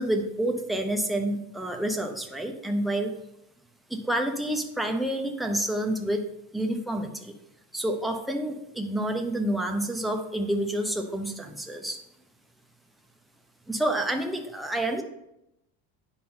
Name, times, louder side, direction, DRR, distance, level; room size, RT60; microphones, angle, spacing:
voice 1, 0.0-3.1 3.9-6.3 6.5-7.3 7.7-12.0 13.7-15.0, right 1 dB, ahead, 2 dB, 0.7 m, -28 dB
8.9 x 5.7 x 4.3 m, 0.84 s
cardioid pair, 160°, 38 cm